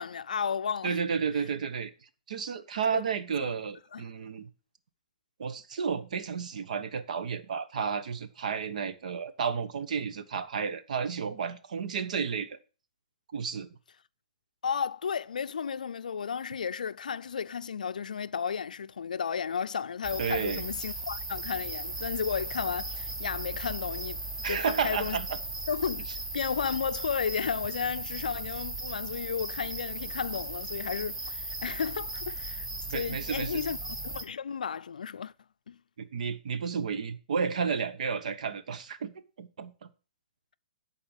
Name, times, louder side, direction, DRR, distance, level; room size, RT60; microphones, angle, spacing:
voice 1, 0.0-1.0 2.9-3.0 3.4-3.5 3.9-4.0 14.6-24.2 24.5-25.2 25.7-26.1 26.3-33.8 34.0-35.3 35.7-35.8, left 7 dB, 85° left, 0.4 m, -33 dB
voice 2, 0.8-1.9 2.3-4.5 5.4-12.6 13.3-13.7 20.2-20.6 24.4-25.4 32.9-33.6 36.0-39.9, right 6 dB, 70° right, 1.1 m, -32 dB
sound 1, 20.0-34.2, right 2 dB, 10° right, 1.1 m, -37 dB
10.5 x 4.3 x 7.1 m
hypercardioid pair, 140°, 4 cm